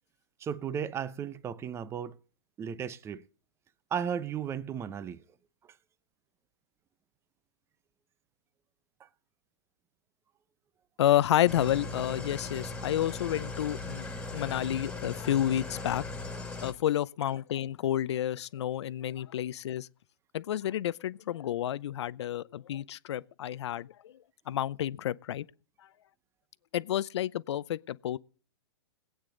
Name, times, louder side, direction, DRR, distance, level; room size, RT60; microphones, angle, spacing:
voice 1, 0.4-2.2 2.6-3.3 3.9-5.2 5.6-5.8 9.0-9.1, right 8 dB, 15° right, 0.7 m, -35 dB
voice 2, 11.0-14.1 14.3-19.9 20.3-24.1 24.5-25.5 26.7-28.2, left 11 dB, 70° left, 0.7 m, -30 dB
Engine starting / Idling, 11.5-16.7, left 3 dB, 5° left, 2.3 m, -39 dB
21.5 x 8.9 x 3.9 m
hypercardioid pair, 135°, 15 cm